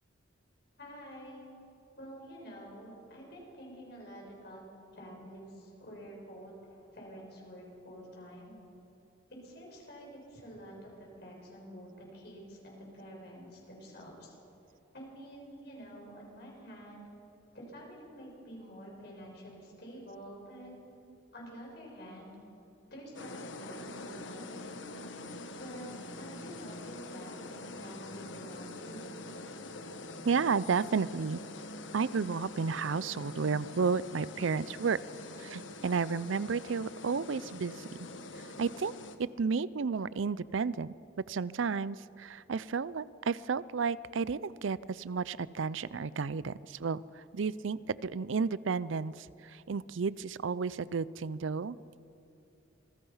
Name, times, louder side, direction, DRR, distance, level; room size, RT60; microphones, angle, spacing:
voice 1, 0.8-1.5 2.0-4.6 4.9-8.6 9.3-10.9 11.2-14.4 14.9-17.1 17.5-20.7 21.3-22.4 22.9-24.7 25.5-29.1, equal, 55° left, -2 dB, 6.9 m, -48 dB
sound 1, 23.1-39.2, left 2 dB, 70° left, 1.4 m, -45 dB
voice 2, 30.2-31.4 31.9-35.0 35.4-37.9 38.6-38.9 39.2-40.9 41.3-51.8, right 5 dB, 80° right, 19 dB, 0.5 m, -32 dB
27.0 x 20.5 x 5.7 m, 2.7 s
head